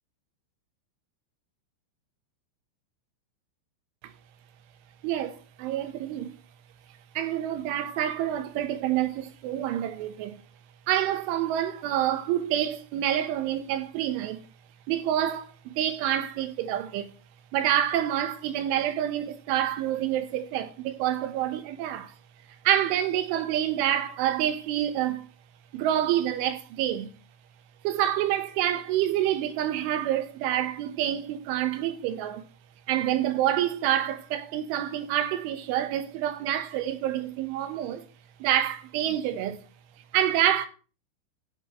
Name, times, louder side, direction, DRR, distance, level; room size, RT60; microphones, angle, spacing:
voice 1, 5.0-6.3 7.2-10.4 10.9-14.5 14.9-17.1 17.5-22.1 22.6-25.3 25.7-27.1 27.8-32.4 32.9-38.0 38.4-39.6 40.1-40.7, right 11 dB, 75° right, 3.4 m, -27 dB
17.0 x 8.1 x 3.2 m
omnidirectional pair, 5.8 m